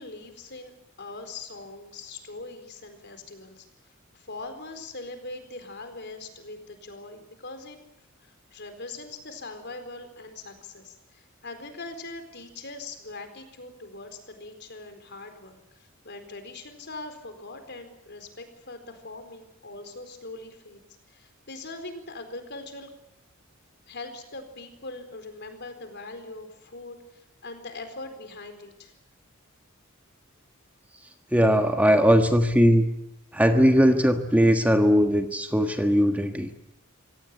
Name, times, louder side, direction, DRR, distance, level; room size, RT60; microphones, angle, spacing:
voice 1, 0.0-3.7 4.1-7.8 8.2-20.8 21.1-22.9 23.9-28.9, left 2 dB, 55° left, 8 dB, 4.3 m, -41 dB
voice 2, 31.3-32.8 33.3-36.5, equal, 5° right, 6 dB, 1.4 m, -19 dB
25.5 x 17.5 x 8.5 m, 0.90 s
head